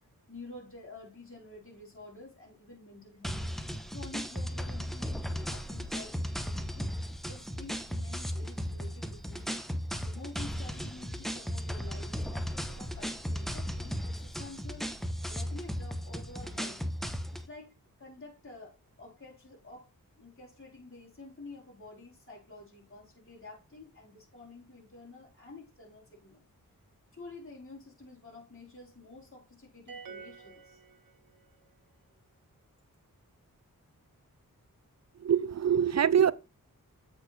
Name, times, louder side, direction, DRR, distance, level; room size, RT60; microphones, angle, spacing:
voice 1, 0.3-3.4 3.9-6.9 7.3-9.6 10.0-14.9 15.3-16.8 17.4-17.7 18.0-19.9 20.1-26.5 27.1-30.8, left 2 dB, 35° left, 4.2 m, -49 dB
sound 1, 3.2-17.5, equal, ahead, 1.2 m, -36 dB
sound 2, 29.9-31.6, right 5 dB, 70° right, 1.1 m, -48 dB
voice 2, 35.2-36.3, right 8 dB, 50° right, 0.6 m, -24 dB
8.0 x 5.1 x 4.4 m
cardioid pair, 50°, 35 cm